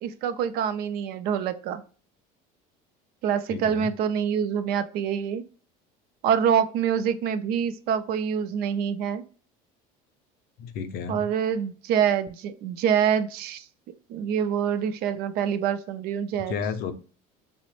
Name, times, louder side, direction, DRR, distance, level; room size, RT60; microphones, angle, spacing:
voice 1, 0.0-1.8 3.2-5.4 6.2-9.2 11.1-13.6 14.1-16.6, right 8 dB, 55° right, 11 dB, 0.4 m, -26 dB
voice 2, 3.5-3.9 10.6-11.3 16.5-16.9, left 6 dB, 55° left, 9 dB, 0.5 m, -32 dB
3.8 x 2.0 x 3.0 m, 0.39 s
cardioid pair, 130°, 18 cm